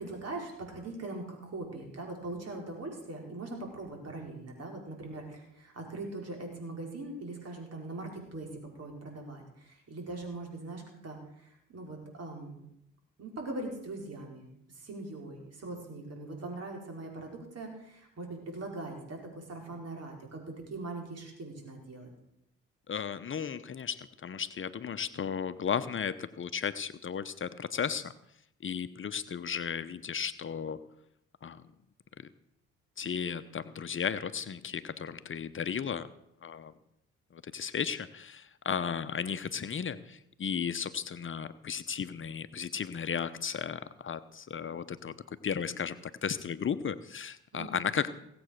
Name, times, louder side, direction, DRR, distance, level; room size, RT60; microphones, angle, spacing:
voice 1, 0.0-12.6 13.2-22.1 47.5-48.0, right 2 dB, 55° right, 2 dB, 5.1 m, -41 dB
voice 2, 22.9-28.1 28.6-30.9 31.4-31.7 32.2-32.3 33.0-36.1 36.4-36.7 37.3-48.1, left 7 dB, 40° left, 12 dB, 0.9 m, -35 dB
18.0 x 8.0 x 6.6 m, 0.78 s
hypercardioid pair, 50°, 31 cm